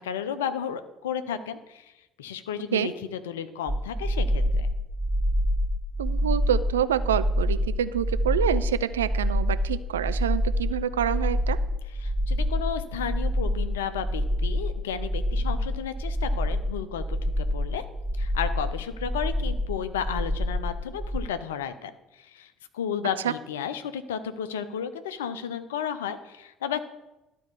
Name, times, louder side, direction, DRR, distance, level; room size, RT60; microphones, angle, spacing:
voice 1, 0.0-1.9 2.2-4.7 12.0-17.8 18.2-22.5 22.7-26.8, left 8 dB, 70° left, 11 dB, 0.6 m, -33 dB
sound 1, 3.7-21.3, equal, 5° right, 0.5 m, -27 dB
voice 2, 6.0-11.6 23.2-23.3, right 9 dB, 75° right, 13 dB, 0.3 m, -27 dB
12.0 x 4.6 x 6.8 m, 0.98 s
figure-of-eight pair, 55°, 0 cm